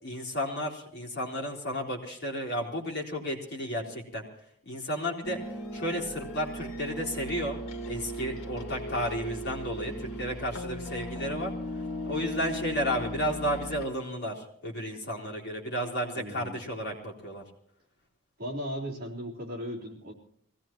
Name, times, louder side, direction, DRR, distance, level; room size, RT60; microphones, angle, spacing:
voice 1, 0.0-4.2 4.7-7.6 7.8-11.5 12.1-17.4, equal, 50° left, -1 dB, 3.7 m, -33 dB
sound 1, 5.2-13.9, equal, 85° left, 1.9 m, -37 dB
voice 2, 16.1-16.6 18.4-20.1, equal, 45° right, -3 dB, 3.6 m, -37 dB
24.5 x 17.5 x 3.0 m, 0.66 s
head